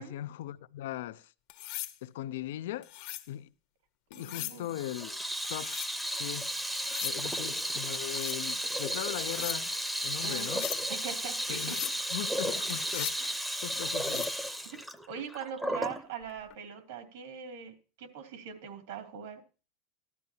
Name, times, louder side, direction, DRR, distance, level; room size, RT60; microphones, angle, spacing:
voice 1, 0.0-1.3 2.0-3.0 3.3-3.5 4.1-5.2 5.5-5.8 6.1-6.5 7.0-9.7 10.0-10.7 11.5-13.3 13.6-14.3 15.2-15.3, left 13 dB, 85° left, 0.5 m, -39 dB
sound 1, 1.5-2.0 2.8-3.3 4.1-4.6 5.4-5.9 6.7-7.2 7.9-8.4 9.1-9.6 10.4-10.8 11.5-12.0 12.7-13.2 13.9-14.4 16.3-16.6, left 16 dB, 60° left, 1.0 m, -40 dB
voice 2, 4.1-4.7 7.2-7.3 10.2-10.5 10.9-11.9 15.1-19.4, right 7 dB, 80° right, 2.7 m, -42 dB
Water tap faucet / Sink (filling or washing), 4.7-16.0, equal, 5° right, 0.7 m, -34 dB
15.0 x 12.0 x 2.8 m
supercardioid pair, 155°, 0 cm